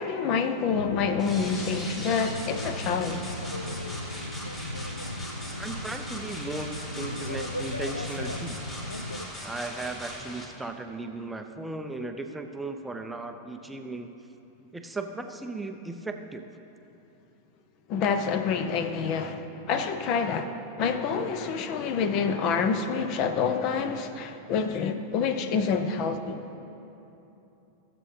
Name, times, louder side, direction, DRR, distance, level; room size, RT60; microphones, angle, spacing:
voice 1, 0.0-3.3 17.9-26.4, left 5 dB, 40° left, 0.6 m, -27 dB
sound 1, 0.7-9.3, left 1 dB, 85° left, 0.4 m, -36 dB
sound 2, 1.2-10.4, equal, 20° left, 1.8 m, -40 dB
voice 2, 5.6-8.6 9.4-14.1 14.7-16.4, right 2 dB, 5° right, 0.5 m, -36 dB
17.0 x 7.6 x 3.2 m
figure-of-eight pair, 90°, 0 cm